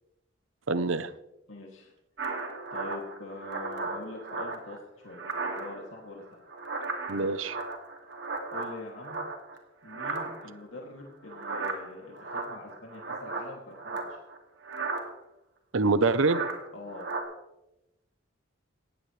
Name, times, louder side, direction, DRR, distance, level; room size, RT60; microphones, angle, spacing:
voice 1, 0.7-1.1 7.1-7.6 15.7-16.4, right 3 dB, 80° right, 14 dB, 0.8 m, -25 dB
voice 2, 1.5-1.9 2.7-6.4 8.5-9.2 9.8-14.2 16.7-17.1, left 2 dB, 80° left, -1 dB, 2.7 m, -44 dB
sound 1, 2.2-4.8 5.1-6.0 6.3-9.6 9.9-10.6 11.3-14.4 14.6-15.1 16.1-16.6 16.9-17.2, right 3 dB, 60° right, 2.5 m, -35 dB
18.5 x 16.0 x 3.3 m, 0.91 s
head